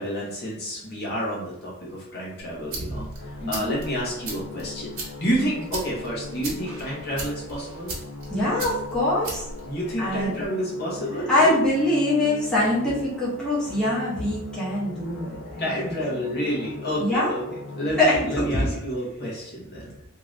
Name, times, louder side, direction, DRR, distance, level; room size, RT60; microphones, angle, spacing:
voice 1, 0.0-7.9 9.6-11.7 15.6-19.9, equal, 45° left, -5 dB, 0.9 m, -29 dB
sound 1, 2.4-10.4, right 2 dB, 70° right, 1.0 m, -38 dB
sound 2, 3.2-18.0, left 4 dB, 90° left, 0.6 m, -40 dB
voice 2, 3.4-3.8 5.4-5.5 8.3-9.4 10.0-10.3 11.3-15.9 17.0-17.3 18.0-18.7, left 1 dB, 5° left, -9 dB, 0.7 m, -24 dB
2.8 x 2.5 x 3.1 m, 0.82 s
head